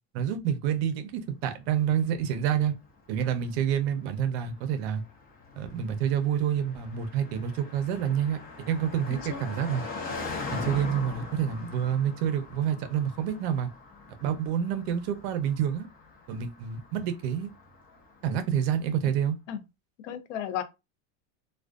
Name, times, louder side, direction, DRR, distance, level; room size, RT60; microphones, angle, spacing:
voice 1, 0.1-2.7 3.1-5.0 5.6-8.4 8.7-9.8 10.5-13.7 14.2-15.9 16.3-17.5 18.2-19.4, right 9 dB, 60° right, 0.6 m, -28 dB
Car passing by, 2.1-18.5, left 4 dB, 25° left, 0.6 m, -42 dB
voice 2, 9.1-9.4 19.5-19.6 20.0-20.6, left 9 dB, 80° left, 0.6 m, -34 dB
2.5 x 2.2 x 2.3 m
supercardioid pair, 150°, 36 cm